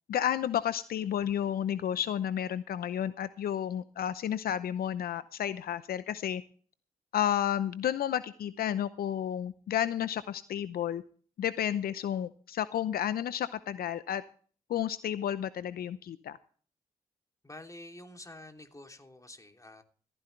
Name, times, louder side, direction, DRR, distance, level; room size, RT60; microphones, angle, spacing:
voice 1, 0.1-6.4 7.1-11.0 11.4-14.2 14.7-16.4, left 10 dB, 70° left, 14 dB, 0.7 m, -31 dB
voice 2, 17.4-19.8, left 1 dB, 20° left, 5 dB, 3.0 m, -48 dB
15.0 x 14.5 x 3.3 m, 0.43 s
hypercardioid pair, 45°, 16 cm